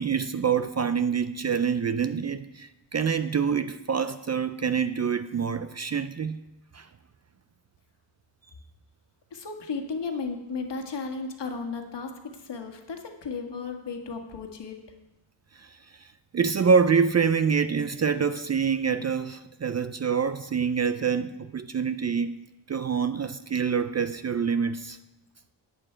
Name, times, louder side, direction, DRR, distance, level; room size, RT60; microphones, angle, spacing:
voice 1, 0.0-6.4 6.7-6.9 15.6-15.8 16.3-25.0, right 6 dB, 35° right, 0.4 m, -26 dB
voice 2, 9.3-14.8, left 4 dB, 60° left, 1.7 m, -34 dB
10.5 x 9.0 x 4.5 m
cardioid pair, 75°, 48 cm